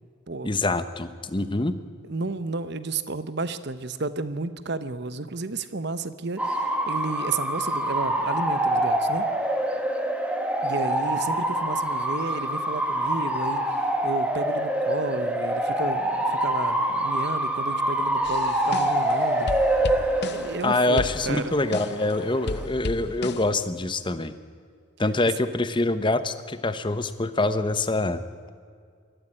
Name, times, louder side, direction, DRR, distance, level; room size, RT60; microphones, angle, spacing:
voice 1, 0.4-1.8 20.6-24.3 25.0-28.2, left 2 dB, 25° left, 11 dB, 0.9 m, -25 dB
voice 2, 2.0-9.2 10.6-19.5 20.3-21.6, right 3 dB, 55° right, 13 dB, 1.0 m, -32 dB
Bark / Motor vehicle (road) / Siren, 6.4-22.6, right 1 dB, 5° right, 1.6 m, -26 dB
sound 1, 18.2-19.2 19.5-20.7 21.0-22.1 22.5-23.6, left 3 dB, 55° left, 0.6 m, -34 dB
21.5 x 14.0 x 10.0 m, 2.2 s
head